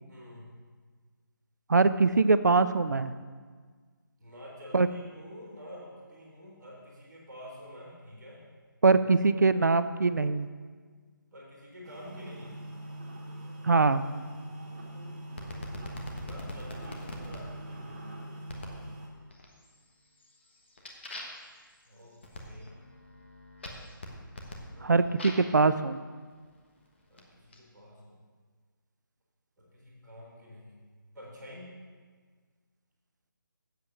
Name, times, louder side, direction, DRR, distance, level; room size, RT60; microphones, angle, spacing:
voice 1, 0.1-0.5 4.2-8.4 11.3-12.6 14.5-15.2 16.2-18.0 21.8-22.7 24.7-25.1 27.1-28.2 29.6-30.8 31.1-31.7, equal, ahead, -22 dB, 0.4 m, -48 dB
voice 2, 1.7-3.1 4.7-4.9 8.8-10.5 13.6-14.0 24.8-26.0, right 4 dB, 55° right, 13 dB, 0.5 m, -23 dB
sound 1, 11.8-19.1, right 1 dB, 20° right, 1.2 m, -43 dB
sound 2, 15.4-17.4 18.5-18.8 19.3-19.8 20.2-25.6 26.3-27.6, left 1 dB, 30° left, 1.2 m, -44 dB
8.0 x 7.6 x 7.0 m, 1.5 s
figure-of-eight pair, 175°, 12 cm